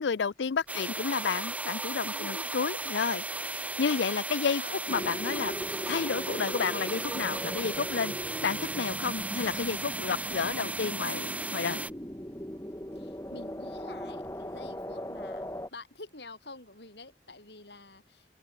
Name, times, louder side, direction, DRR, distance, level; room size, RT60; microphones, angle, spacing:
voice 1, 0.0-4.6 4.9-5.6 5.9-11.8, left 6 dB, 90° left, 0.5 m, -31 dB
sound 1, 0.7-11.9, right 2 dB, 10° right, 1.5 m, -36 dB
voice 2, 2.1-2.5 4.3-4.9 12.9-18.3, left 2 dB, 70° left, 5.9 m, -48 dB
sound 2, 4.9-15.7, equal, 15° left, 2.6 m, -39 dB
open air
head